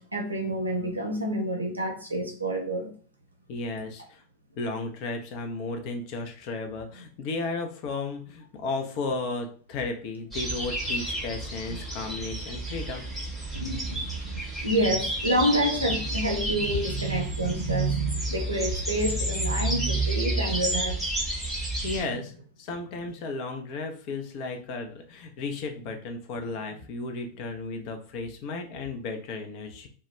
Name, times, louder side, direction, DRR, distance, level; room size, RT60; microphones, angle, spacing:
voice 1, 0.0-2.9 11.7-11.8 13.5-21.0 22.1-22.2, right 1 dB, 80° right, 0.6 m, -28 dB
voice 2, 3.5-4.2 4.6-13.0 21.8-22.3 22.6-29.9, left 3 dB, 45° left, 0.5 m, -34 dB
sound 1, 10.3-22.0, right 1 dB, ahead, 0.9 m, -31 dB
2.2 x 2.2 x 3.0 m
figure-of-eight pair, 90°, 0 cm